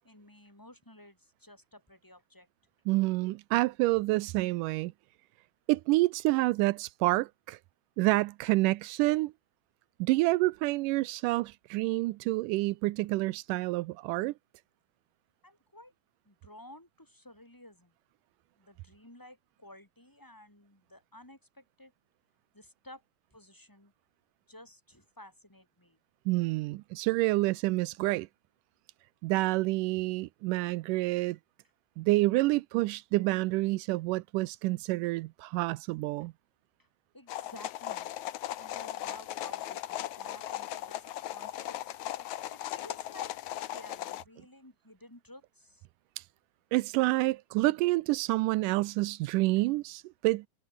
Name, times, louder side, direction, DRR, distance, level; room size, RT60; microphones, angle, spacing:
voice 1, 0.0-2.5 15.4-15.9 16.3-17.9 18.6-21.9 22.5-23.0 23.3-23.9 24.5-26.0 37.1-38.1 38.6-42.0 42.4-43.3 43.6-45.9, left 1 dB, 5° left, 4.1 m, -53 dB
voice 2, 2.9-4.9 5.7-7.6 8.0-9.3 10.0-14.3 26.3-28.3 29.2-31.4 32.0-36.3 46.2-46.3 46.7-50.5, right 20 dB, 85° right, 1.9 m, -28 dB
sound 1, 37.3-44.2, left 13 dB, 65° left, 2.0 m, -38 dB
omnidirectional pair, 4.3 m